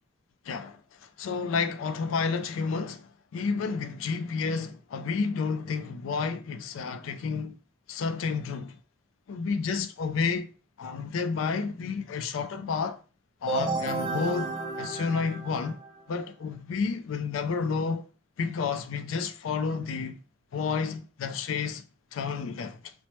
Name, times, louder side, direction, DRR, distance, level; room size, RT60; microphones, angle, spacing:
voice 1, 0.5-7.6 7.9-8.8 9.3-10.5 10.8-13.0 13.4-15.8 16.1-18.1 18.4-20.2 20.5-21.8 22.1-22.9, left 5 dB, 85° left, 0.4 m, -30 dB
sound 1, 13.5-16.1, right 3 dB, 20° right, 0.5 m, -33 dB
2.9 x 2.1 x 3.0 m
head